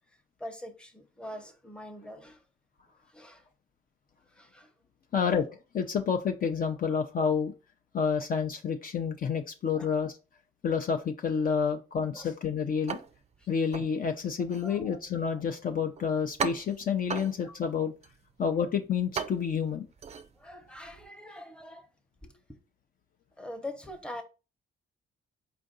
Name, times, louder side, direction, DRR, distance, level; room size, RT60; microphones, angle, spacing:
voice 1, 0.4-2.4 3.1-3.5 4.3-4.7 9.7-9.9 11.7-11.8 12.1-12.3 14.6-15.0 17.1-17.9 20.4-21.9 22.2-22.6 23.4-24.2, left 1 dB, 5° left, 0.8 m, -44 dB
voice 2, 5.1-5.5 5.7-7.5 7.9-10.1 10.6-13.0 13.5-17.9 18.4-19.8, left 6 dB, 45° left, 0.5 m, -29 dB
sound 1, 12.9-21.1, right 5 dB, 35° right, 0.4 m, -40 dB
4.6 x 2.5 x 3.8 m
cardioid pair, 90°, 20 cm